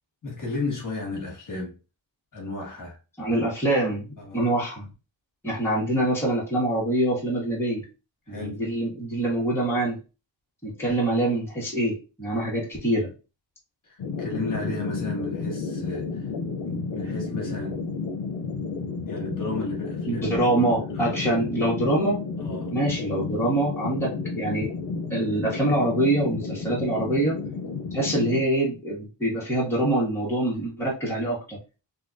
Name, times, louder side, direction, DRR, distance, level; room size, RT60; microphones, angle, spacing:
voice 1, 0.2-1.8 2.3-3.0 4.2-4.4 8.3-8.6 13.8-16.3 16.6-17.9 19.0-21.4 22.4-22.7, left 2 dB, 45° left, 1.4 m, -34 dB
voice 2, 3.2-4.1 4.3-4.9 5.4-7.8 8.3-10.0 10.6-13.1 20.1-22.2 22.7-24.7 25.1-27.4 27.9-31.6, right 1 dB, 5° left, 1.5 m, -25 dB
sound 1, 14.0-28.4, left 4 dB, 80° left, 0.7 m, -32 dB
4.1 x 2.8 x 2.5 m
wide cardioid pair, 175°, 44 cm